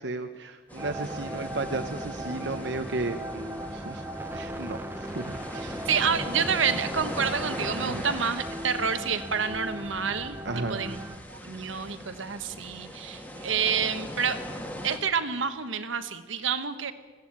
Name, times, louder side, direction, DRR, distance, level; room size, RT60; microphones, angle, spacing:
voice 1, 0.0-4.0 4.3-5.9 7.8-8.1 10.4-11.0 13.4-13.5, right 2 dB, 60° right, 7 dB, 0.9 m, -34 dB
sound 1, 0.7-15.0, equal, 10° left, 1.8 m, -40 dB
sound 2, 0.8-11.2, right 1 dB, 10° right, 0.8 m, -38 dB
voice 2, 5.9-10.4 10.7-11.0 11.3-14.4 14.8-16.9, right 6 dB, 80° right, 10 dB, 1.3 m, -28 dB
20.0 x 16.0 x 8.8 m, 1.4 s
head